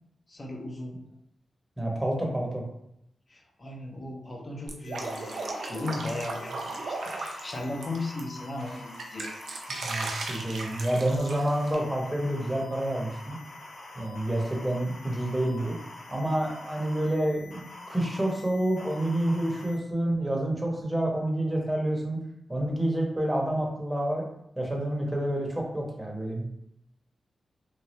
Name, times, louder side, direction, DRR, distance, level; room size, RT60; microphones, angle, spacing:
voice 1, 0.3-1.0 3.3-9.3, left 2 dB, 40° left, 1 dB, 0.7 m, -36 dB
voice 2, 1.8-2.6 9.7-13.4 14.0-15.8 16.1-22.2 22.5-24.3 24.6-26.5, right 1 dB, 10° right, -1 dB, 0.8 m, -28 dB
Drip, 4.7-8.2 8.6-11.7, right 3 dB, 80° right, 0.4 m, -36 dB
sound 1, 4.8-19.8, left 2 dB, 85° left, 0.7 m, -45 dB
3.0 x 2.3 x 2.9 m, 0.78 s
cardioid pair, 80°, 0 cm